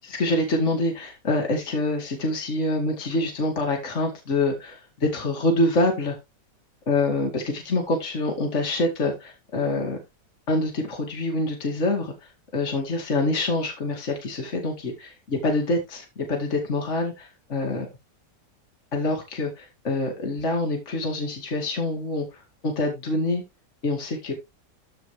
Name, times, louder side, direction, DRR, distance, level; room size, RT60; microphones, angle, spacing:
voice 1, 0.0-6.2 6.9-10.0 10.5-17.9 18.9-23.4 23.8-24.3, left 2 dB, 40° left, 2.5 m, -26 dB
13.5 x 5.0 x 3.3 m
omnidirectional pair, 1.9 m